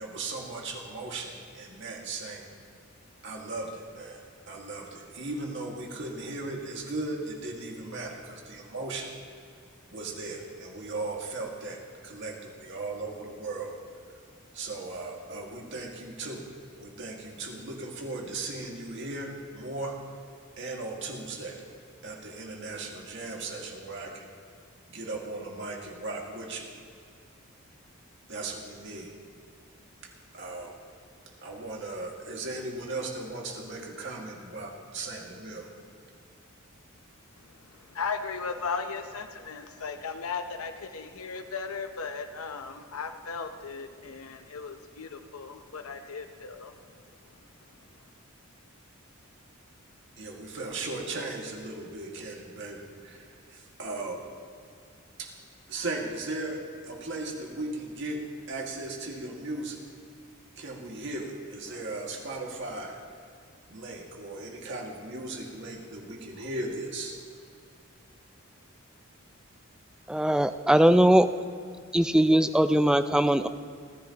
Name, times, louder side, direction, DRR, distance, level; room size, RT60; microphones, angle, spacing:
voice 1, 0.0-2.4 3.2-9.1 9.9-13.7 14.5-16.5 16.8-20.0 20.6-21.6 22.0-24.3 24.9-26.7 28.3-29.1 30.0-30.8 31.4-35.7 50.2-54.2 55.2-55.3 55.7-58.2 58.5-59.8 60.6-63.0 63.7-67.2, right 2 dB, 60° right, 0 dB, 1.9 m, -37 dB
voice 2, 37.4-46.8, left 5 dB, 90° left, 6 dB, 0.8 m, -36 dB
voice 3, 70.1-71.3 71.9-73.5, right 1 dB, 5° right, 10 dB, 0.3 m, -20 dB
29.5 x 10.0 x 2.9 m, 2.3 s
head